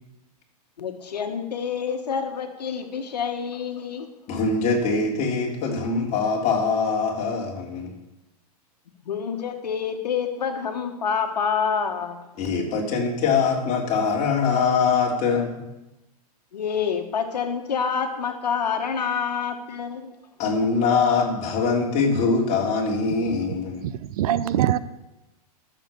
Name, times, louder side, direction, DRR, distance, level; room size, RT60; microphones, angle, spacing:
voice 1, 0.8-4.1 9.0-12.3 16.5-20.1, left 6 dB, 90° left, 1.5 m, -27 dB
voice 2, 4.3-7.9 12.4-15.6 20.4-23.8, left 4 dB, 35° left, 3.6 m, -23 dB
voice 3, 23.8-24.8, right 11 dB, 65° right, 0.7 m, -23 dB
13.0 x 7.5 x 7.0 m
hypercardioid pair, 125°, 20 cm